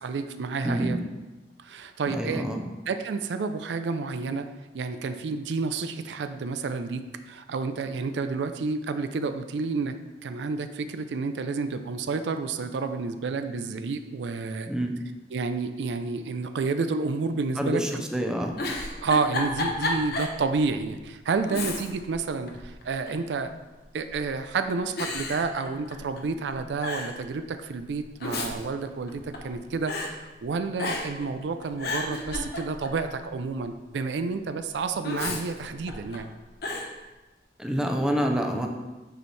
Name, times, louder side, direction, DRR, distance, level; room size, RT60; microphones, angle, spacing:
voice 1, 0.0-1.0 1.6-2.5 2.9-4.5 4.7-10.0 10.2-14.7 15.3-18.0 19.0-23.5 23.9-36.3, right 4 dB, 80° right, 9 dB, 0.4 m, -30 dB
voice 2, 0.6-1.0 2.1-2.6 14.7-14.9 17.6-18.5 37.6-38.7, equal, 5° right, 2 dB, 0.5 m, -27 dB
Giggle, 18.5-20.4 20.8-20.9 21.5-22.1 22.5-23.3 24.0-24.4 25.0-26.2 26.5-26.6 26.8-27.2 28.0-29.5 29.9-30.1 30.8-31.2 31.6-33.0 35.0-36.2 36.6-36.9, left 2 dB, 60° left, 0.9 m, -32 dB
7.9 x 4.4 x 3.2 m, 1.2 s
head